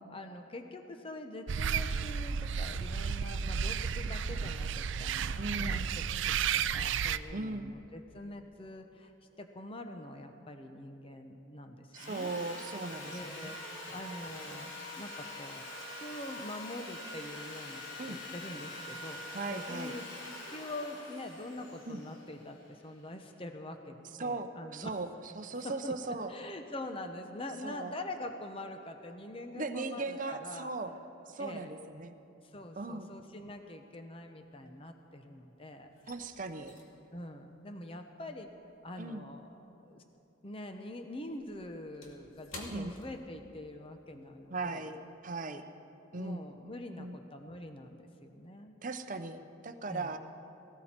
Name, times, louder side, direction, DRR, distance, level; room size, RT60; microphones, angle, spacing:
voice 1, 0.1-13.6 13.9-15.6 16.0-17.8 18.1-20.0 20.5-25.0 25.6-25.9 26.3-30.7 31.4-31.7 32.4-35.9 37.1-38.5 38.8-40.0 40.4-44.9 46.1-48.8 49.9-50.2, left 1 dB, 25° left, 6 dB, 0.8 m, -45 dB
sound 1, 1.5-7.2, right 7 dB, 65° right, 0.4 m, -32 dB
voice 2, 5.4-5.9 7.3-7.7 11.9-13.5 18.0-18.2 19.3-20.0 21.9-22.0 24.2-25.1 25.4-26.3 27.6-27.9 29.5-30.9 31.3-32.1 32.8-33.1 36.1-36.7 39.0-39.3 42.7-42.9 44.5-45.6 46.1-46.4 47.0-47.2 48.8-50.2, right 3 dB, 40° right, 7 dB, 0.7 m, -38 dB
Sawing, 11.9-23.0, left 1 dB, 65° left, 3.0 m, -45 dB
sound 2, 33.9-35.3 35.6-40.3 40.5-43.9 44.2-44.4 44.8-45.1, left 2 dB, 80° left, 2.5 m, -53 dB
18.0 x 17.5 x 4.4 m, 3.0 s
head